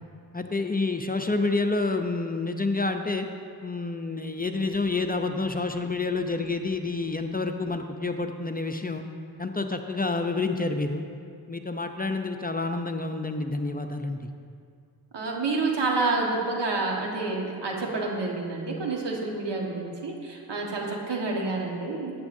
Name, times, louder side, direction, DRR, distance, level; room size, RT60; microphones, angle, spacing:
voice 1, 0.3-3.3 3.6-9.0 9.4-11.0 11.5-14.3, left 3 dB, 20° left, 5 dB, 0.6 m, -28 dB
voice 2, 15.1-22.1, right 3 dB, 75° right, 0 dB, 1.6 m, -28 dB
13.5 x 9.5 x 2.7 m, 2.3 s
cardioid pair, 50°, 42 cm